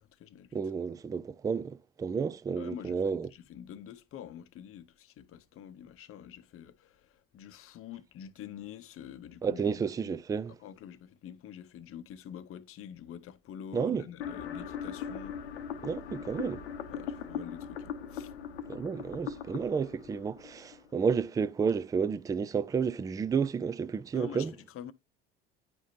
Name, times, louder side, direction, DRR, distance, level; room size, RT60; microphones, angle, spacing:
voice 1, 0.0-0.6 2.6-10.2 10.6-15.4 16.9-18.3 24.1-24.9, left 9 dB, 45° left, 0.8 m, -46 dB
voice 2, 0.5-3.3 9.4-10.5 13.7-14.0 15.8-16.6 18.7-24.5, right 6 dB, 10° right, 0.3 m, -31 dB
sound 1, 14.2-21.2, left 8 dB, 80° left, 0.8 m, -40 dB
9.4 x 4.9 x 2.7 m
hypercardioid pair, 65°, 32 cm